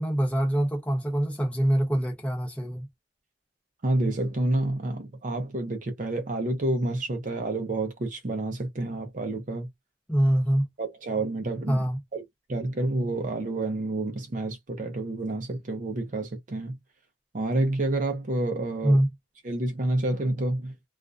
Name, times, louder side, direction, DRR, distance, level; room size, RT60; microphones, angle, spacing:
voice 1, 0.0-2.9 10.1-10.7 11.7-12.0 18.8-19.1, right 1 dB, 5° left, 0.8 m, -24 dB
voice 2, 3.8-9.7 10.8-11.9 12.1-12.2 12.5-16.8 17.3-19.0 19.4-20.7, right 2 dB, 45° right, 0.5 m, -29 dB
2.4 x 2.1 x 2.5 m
head